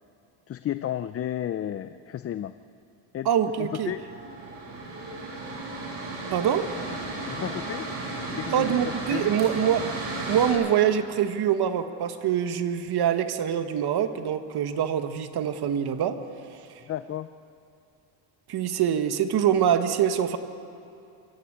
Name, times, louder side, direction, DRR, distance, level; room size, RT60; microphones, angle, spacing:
voice 1, 0.5-2.5 3.1-3.3 3.6-4.0 7.3-7.9 8.4-9.4 16.9-17.3, left 11 dB, 30° left, 12 dB, 0.5 m, -33 dB
voice 2, 3.2-3.9 6.3-6.7 8.5-9.8 10.3-16.2 18.5-20.4, right 9 dB, 55° right, 9 dB, 1.4 m, -24 dB
Mechanical fan, 3.5-10.5, right 2 dB, 75° right, 6.9 m, -35 dB
24.5 x 14.0 x 8.6 m, 2.7 s
cardioid pair, 110°, 47 cm